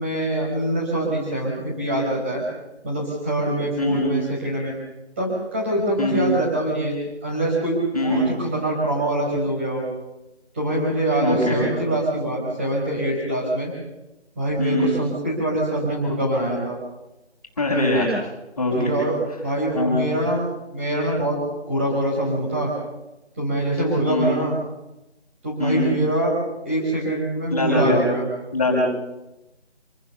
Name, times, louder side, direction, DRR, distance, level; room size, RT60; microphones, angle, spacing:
voice 1, 0.0-2.4 2.8-4.7 5.2-7.0 7.2-9.9 10.5-13.7 14.3-16.8 18.7-19.1 19.4-20.4 20.7-21.4 21.7-22.7 23.4-24.5 25.4-26.3 26.6-28.3, right 1 dB, 10° right, -5 dB, 5.2 m, -24 dB
voice 2, 3.8-4.1 6.0-6.2 7.9-8.3 11.2-11.7 14.6-14.9 17.6-18.1 18.6-18.9 19.7-20.1 24.1-24.3 25.6-25.9 27.5-28.0 28.5-29.1, left 1 dB, 20° left, -9 dB, 5.2 m, -22 dB
27.0 x 20.0 x 7.0 m, 0.97 s
figure-of-eight pair, 175°, 34 cm